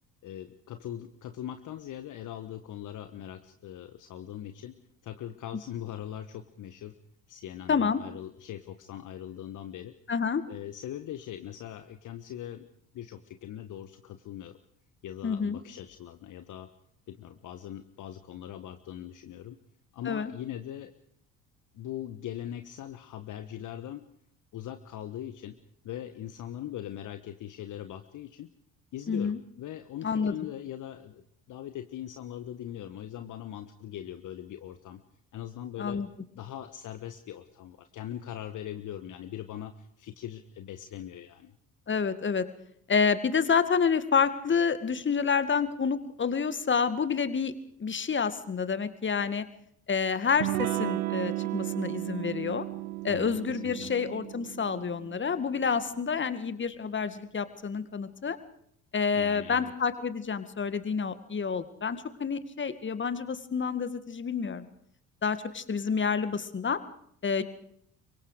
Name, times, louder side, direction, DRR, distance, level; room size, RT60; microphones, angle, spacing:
voice 1, 0.2-4.8 5.0-6.9 7.3-9.9 10.5-12.7 12.9-14.6 15.0-16.7 17.1-19.6 19.9-20.9 21.7-24.0 24.5-25.6 25.8-28.5 28.9-35.0 35.3-36.0 36.3-41.5 53.1-53.9 59.1-59.7, left 11 dB, 45° left, 9 dB, 1.4 m, -41 dB
voice 2, 7.7-8.0 10.1-10.4 15.2-15.6 20.1-20.3 29.1-29.4 30.0-30.3 35.8-36.1 41.9-42.4 42.9-47.5 47.8-49.4 49.9-52.7 53.0-58.4 58.9-64.7 65.2-66.8 67.2-67.4, left 6 dB, 25° left, 12 dB, 2.1 m, -28 dB
Electric guitar / Strum, 50.4-55.8, right 18 dB, 75° right, 1.2 m, -34 dB
28.0 x 24.0 x 5.1 m, 0.68 s
figure-of-eight pair, 55°, 43 cm